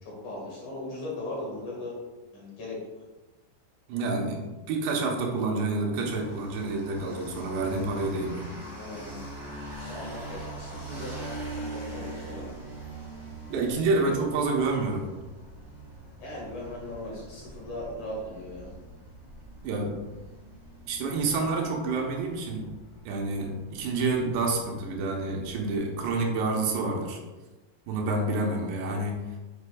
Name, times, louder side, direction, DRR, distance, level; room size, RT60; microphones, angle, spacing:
voice 1, 0.0-1.9 2.3-2.8 8.7-9.2 9.8-12.5 16.2-18.7, left 1 dB, 55° left, -4 dB, 2.7 m, -38 dB
voice 2, 3.9-4.4 4.7-8.5 13.5-15.1 19.6-20.0 20.9-22.7 23.0-27.2 27.9-29.2, right 3 dB, 80° right, 0 dB, 3.1 m, -28 dB
sound 1, 5.9-25.7, right 2 dB, 10° right, 1.1 m, -43 dB
8.3 x 7.9 x 2.3 m, 1.1 s
omnidirectional pair, 5.0 m